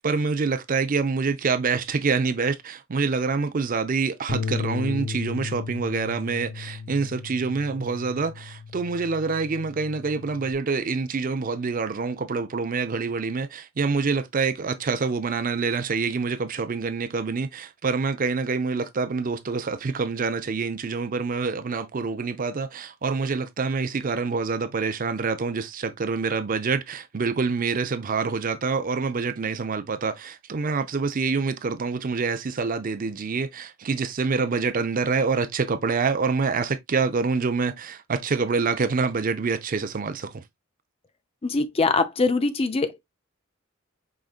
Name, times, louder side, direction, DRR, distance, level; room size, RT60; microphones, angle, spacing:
voice 1, 0.0-40.4, right 4 dB, 40° right, 0.5 m, -26 dB
Bass guitar, 4.3-10.5, left 5 dB, 90° left, 0.7 m, -35 dB
voice 2, 41.4-43.0, left 3 dB, 30° left, 0.5 m, -23 dB
5.0 x 3.8 x 2.3 m
head